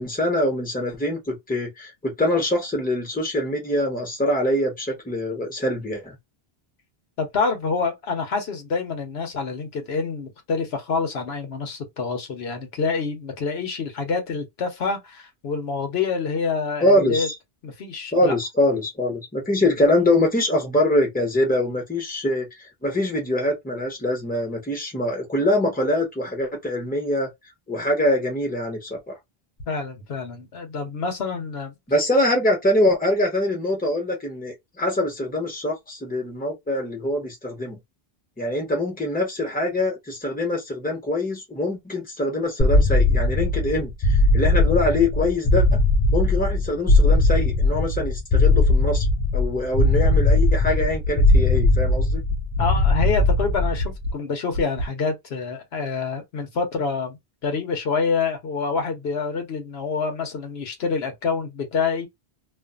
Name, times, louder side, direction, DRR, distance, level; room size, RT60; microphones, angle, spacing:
voice 1, 0.0-6.2 16.8-17.3 18.1-27.3 27.7-29.2 31.9-37.8 38.4-45.8 46.1-49.0 49.3-52.2, left 1 dB, 10° left, 1.0 m, -24 dB
voice 2, 7.2-17.3 17.6-18.4 29.7-31.7 52.6-62.1, left 4 dB, 80° left, 1.1 m, -27 dB
sound 1, 42.6-54.0, left 2 dB, 50° left, 0.5 m, -19 dB
sound 2, 50.0-50.4 50.8-51.1 51.5-51.9 52.3-52.6 53.0-53.4 53.8-54.1 54.5-54.9, equal, 75° right, 0.9 m, -27 dB
2.5 x 2.5 x 2.3 m
omnidirectional pair, 1.0 m